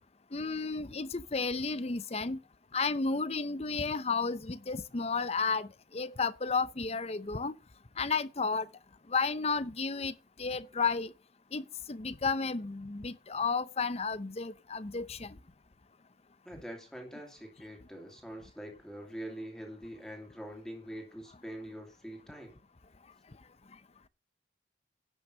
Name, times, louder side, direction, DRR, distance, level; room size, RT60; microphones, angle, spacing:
voice 1, 0.3-2.4 2.7-7.5 8.0-8.7 9.1-11.1 11.5-15.4, left 4 dB, 35° left, 0.7 m, -32 dB
voice 2, 16.4-22.6, equal, 5° left, 2.6 m, -44 dB
11.0 x 6.1 x 6.5 m
head